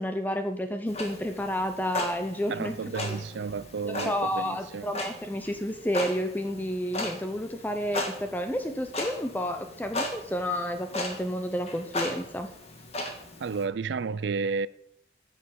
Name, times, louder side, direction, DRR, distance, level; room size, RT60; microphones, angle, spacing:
voice 1, 0.0-3.2 3.8-12.5, equal, 10° left, 0.6 m, -31 dB
Clock, 0.9-13.6, left 1 dB, 35° left, 1.6 m, -37 dB
voice 2, 2.5-4.9 13.4-14.7, right 5 dB, 85° right, 0.4 m, -32 dB
9.6 x 6.4 x 7.4 m
head